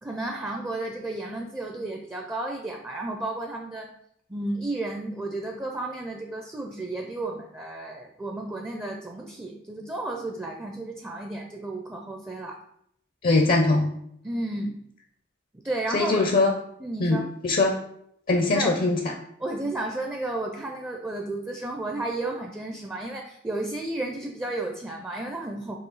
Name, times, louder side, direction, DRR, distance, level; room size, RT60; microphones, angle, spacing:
voice 1, 0.0-3.9 4.3-12.6 14.2-14.7 15.5-16.3 16.8-17.3 18.5-18.7 19.4-25.8, right 2 dB, 10° right, 1 dB, 0.4 m, -32 dB
voice 2, 13.2-13.9 15.9-16.5 17.0-17.2 17.4-17.8 18.3-19.0, left 2 dB, 50° left, 2 dB, 0.5 m, -21 dB
4.8 x 2.7 x 3.9 m, 0.71 s
head